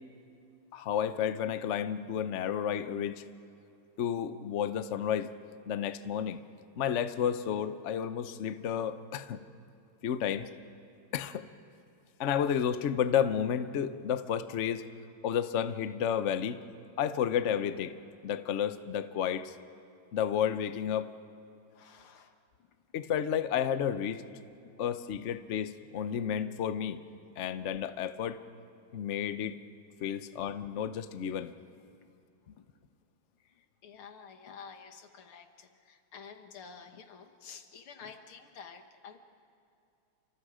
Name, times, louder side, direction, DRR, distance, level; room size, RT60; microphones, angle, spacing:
voice 1, 0.7-3.2 4.0-5.3 5.7-6.4 6.8-9.4 10.0-10.5 11.1-11.5 12.2-14.8 15.2-16.6 17.0-17.9 18.2-19.5 20.1-21.1 22.9-24.2 24.8-27.0 27.4-28.4 28.9-29.6 30.0-31.5, left 8 dB, 65° left, 11 dB, 0.7 m, -31 dB
voice 2, 21.7-22.7 24.6-24.9 30.1-30.2 32.6-32.7 33.4-39.2, left 6 dB, 90° left, 6 dB, 2.3 m, -50 dB
30.0 x 25.5 x 5.0 m, 2.7 s
omnidirectional pair, 2.3 m